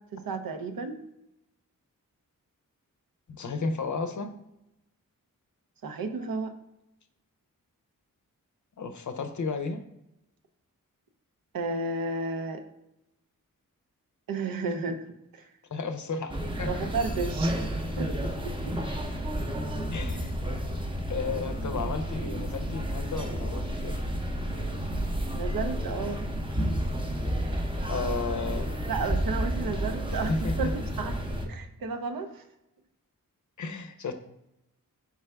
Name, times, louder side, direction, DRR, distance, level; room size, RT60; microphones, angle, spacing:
voice 1, 0.1-1.0 5.8-6.5 11.5-12.6 14.3-15.1 15.3-15.5 16.6-18.1 18.6-18.7 25.3-26.2 28.9-31.2 31.5-32.4, right 4 dB, 85° right, 7 dB, 0.6 m, -32 dB
voice 2, 3.3-4.3 8.8-9.8 15.7-16.8 19.9-20.3 21.1-24.0 27.9-28.7 30.1-30.7 33.6-34.1, left 4 dB, 60° left, 8 dB, 0.5 m, -33 dB
sound 1, 16.3-31.5, equal, 15° right, 0.6 m, -31 dB
4.7 x 3.3 x 3.3 m, 0.89 s
wide cardioid pair, 75°, 34 cm